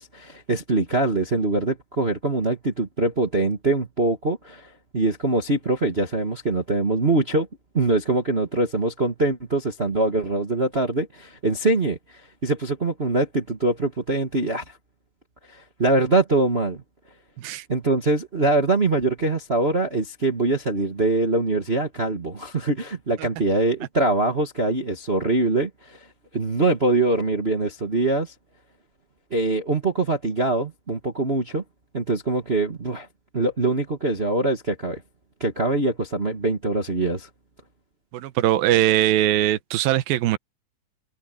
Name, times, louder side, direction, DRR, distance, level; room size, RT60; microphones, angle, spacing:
voice 1, 0.0-4.7 4.9-7.5 7.7-12.0 12.4-14.6 15.5-16.8 17.7-26.0 26.3-28.3 29.3-31.6 31.9-33.1 33.3-35.0 35.4-37.3, right 2 dB, 45° right, 0.8 m, -23 dB
voice 2, 38.1-40.4, right 13 dB, 80° right, 2.8 m, -21 dB
omnidirectional pair, 4.2 m